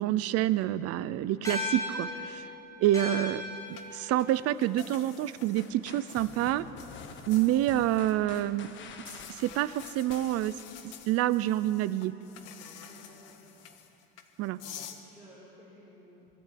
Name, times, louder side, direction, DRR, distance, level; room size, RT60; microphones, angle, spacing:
voice 1, 0.0-2.5 2.8-3.4 3.7-6.6 7.3-8.7 9.3-10.6 10.8-12.1 14.4-14.6, right 13 dB, 55° right, 15 dB, 0.7 m, -27 dB
sound 1, 1.4-6.1, left 2 dB, 10° left, 5.5 m, -38 dB
sound 2, 3.7-8.4 8.8-15.0, left 9 dB, 55° left, 1.6 m, -49 dB
sound 3, 5.6-10.8, left 5 dB, 40° left, 1.5 m, -48 dB
voice 2, 12.8-13.6 14.9-16.3, equal, 5° right, -9 dB, 5.7 m, -55 dB
23.0 x 14.0 x 8.7 m, 2.9 s
cardioid pair, 150°, 30 cm